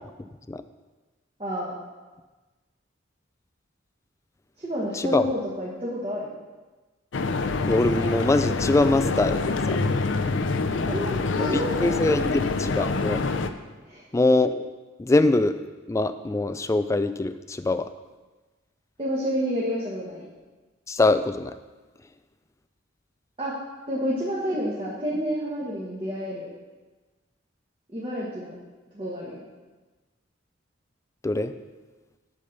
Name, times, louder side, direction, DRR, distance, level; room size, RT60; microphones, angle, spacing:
voice 1, 1.4-1.7 4.6-6.3 10.9-12.0 13.9-14.0 19.0-20.2 23.4-23.6 23.9-26.5 27.9-28.5 28.9-29.4, equal, 30° right, -5 dB, 1.4 m, -29 dB
voice 2, 4.9-5.3 7.7-9.8 11.4-13.2 14.1-14.7 15.0-15.6 15.9-17.9 20.9-21.5 31.2-31.5, left 2 dB, 15° left, 11 dB, 0.3 m, -23 dB
sound 1, 7.1-13.5, left 3 dB, 75° left, 0.5 m, -26 dB
8.5 x 5.6 x 6.5 m, 1.2 s
head